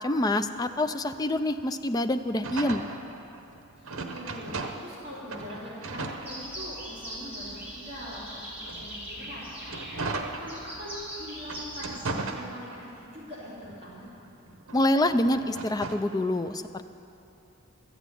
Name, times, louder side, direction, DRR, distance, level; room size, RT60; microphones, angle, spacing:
voice 1, 0.0-2.8 14.7-16.8, left 1 dB, 20° left, 9 dB, 0.4 m, -26 dB
sound 1, 2.4-5.0 5.3-7.0 7.5-11.0 11.4-13.1 13.5-16.1, right 3 dB, 75° right, 1.0 m, -37 dB
voice 2, 3.8-9.4 10.0-12.0 12.3-14.1, equal, 30° right, -8 dB, 3.4 m, -42 dB
sound 2, 6.3-12.1, equal, 5° right, 3.3 m, -41 dB
13.0 x 9.0 x 8.3 m, 2.8 s
head